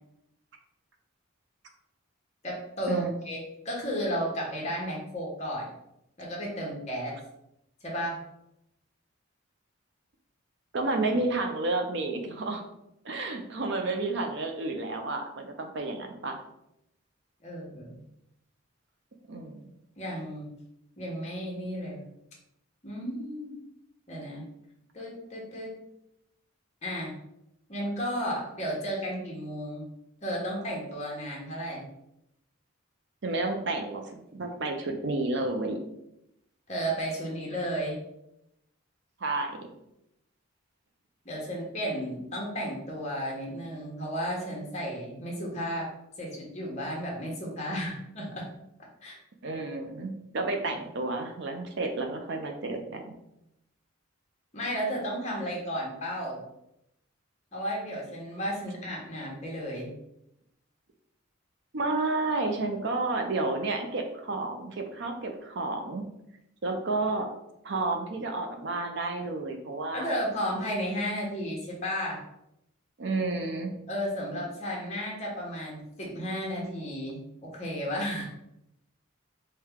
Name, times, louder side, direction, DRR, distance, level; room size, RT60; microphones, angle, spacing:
voice 1, 2.4-5.7 6.2-7.2 7.8-8.2 17.4-18.0 20.0-20.5 21.0-22.0 22.8-23.6 24.1-24.5 24.9-25.7 26.8-27.2 27.7-29.9 30.2-31.9 36.7-38.0 41.2-48.5 49.0-49.2 50.6-50.7 54.5-56.4 57.5-59.9 69.9-72.2 73.9-78.3, equal, 30° left, -2 dB, 1.1 m, -33 dB
voice 2, 10.7-12.6 13.0-16.4 19.3-19.6 33.2-35.8 39.2-39.6 49.4-53.2 61.7-66.0 66.6-67.3 67.6-70.1 73.0-73.7, right 2 dB, 55° right, 4 dB, 0.5 m, -31 dB
4.6 x 2.2 x 3.5 m, 0.82 s
head